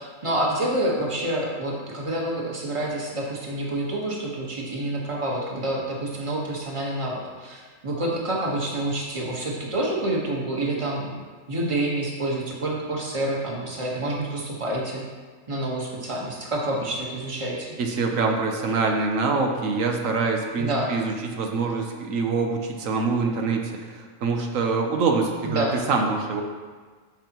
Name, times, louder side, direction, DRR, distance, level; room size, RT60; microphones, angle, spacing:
voice 1, 0.0-11.1 11.5-15.0 15.5-17.7 20.6-20.9 25.4-25.8, right 1 dB, 25° right, -3 dB, 1.3 m, -28 dB
voice 2, 17.8-26.4, right 4 dB, 80° right, 2 dB, 1.2 m, -25 dB
13.0 x 5.3 x 3.0 m, 1.5 s
omnidirectional pair, 1.4 m